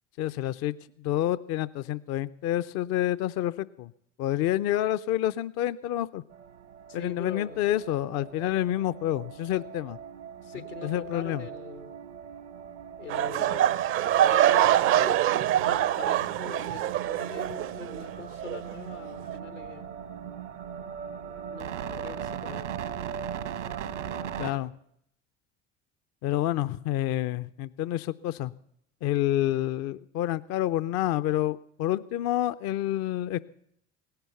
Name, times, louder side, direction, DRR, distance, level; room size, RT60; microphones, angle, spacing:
voice 1, 0.2-3.9 4.2-6.2 6.9-10.0 10.8-11.4 24.4-24.7 26.2-28.5 29.0-33.4, left 13 dB, 45° left, 14 dB, 0.5 m, -28 dB
sound 1, 6.3-24.5, right 8 dB, 75° right, 1.2 m, -40 dB
voice 2, 6.9-7.6 10.4-11.9 13.0-13.8 14.3-19.9 21.5-22.6, left 6 dB, 80° left, 10 dB, 1.4 m, -42 dB
sound 2, 13.1-18.1 18.4-18.7 19.3-19.4, right 12 dB, 35° right, 0.5 m, -24 dB
17.5 x 11.5 x 6.9 m, 0.73 s
figure-of-eight pair, 60°, 36 cm